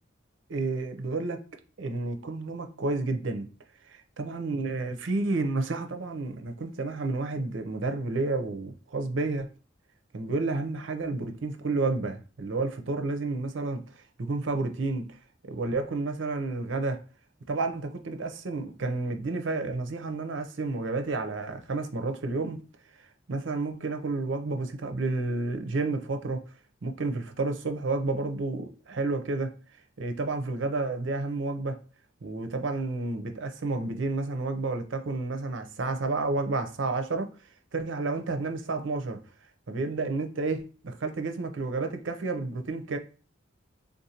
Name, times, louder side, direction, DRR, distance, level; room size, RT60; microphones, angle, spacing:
voice 1, 0.5-1.4 1.8-3.5 3.9-9.5 10.1-13.8 14.2-15.1 15.5-17.0 17.5-22.6 23.3-26.4 26.8-29.5 30.0-31.8 32.2-37.3 37.7-39.2 39.7-43.0, right 3 dB, 70° right, 0.6 m, -30 dB
3.6 x 2.6 x 2.8 m
head